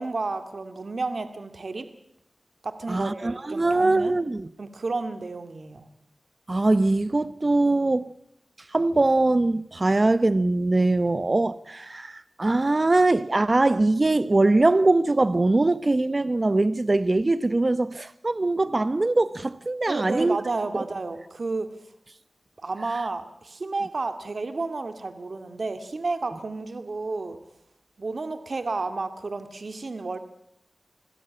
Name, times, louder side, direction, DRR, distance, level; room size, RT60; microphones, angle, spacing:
voice 1, 0.0-1.9 2.6-4.1 4.6-5.9 19.9-21.7 22.6-27.4 28.0-30.2, right 3 dB, 65° right, 2.1 m, -31 dB
voice 2, 2.9-4.5 6.5-8.1 8.7-20.4 20.7-20.8, right 2 dB, 40° right, 0.9 m, -22 dB
27.5 x 16.5 x 8.7 m
wide cardioid pair, 55°, 0 cm